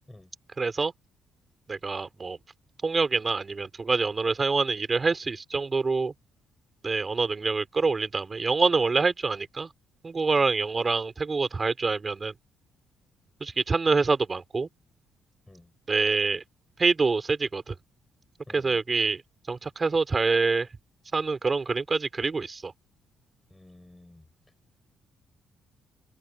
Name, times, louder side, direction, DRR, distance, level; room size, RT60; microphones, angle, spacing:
voice 1, 0.6-0.9 1.7-2.4 2.8-6.1 6.8-9.7 10.0-12.3 13.4-14.7 15.9-16.4 16.8-17.7 18.5-19.2 19.5-20.7 21.1-22.7, right 4 dB, 30° right, 4.7 m, -26 dB
voice 2, 18.5-18.8 23.5-24.3, left 1 dB, 10° left, 6.4 m, -51 dB
cardioid pair, 90°, 0 cm